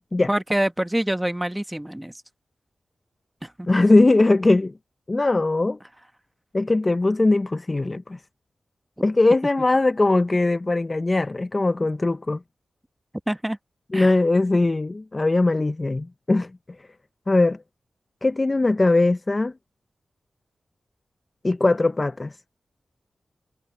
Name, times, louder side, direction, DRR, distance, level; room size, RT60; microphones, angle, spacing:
voice 1, 0.3-2.1 3.4-3.7 13.3-13.6 13.9-14.1, right 1 dB, 10° right, 1.3 m, -26 dB
voice 2, 3.7-4.7 5.1-5.8 6.5-8.2 9.0-12.4 13.9-16.5 17.3-17.6 18.2-19.5 21.4-22.3, left 2 dB, 35° left, 0.8 m, -20 dB
cardioid pair, 45°, 0 cm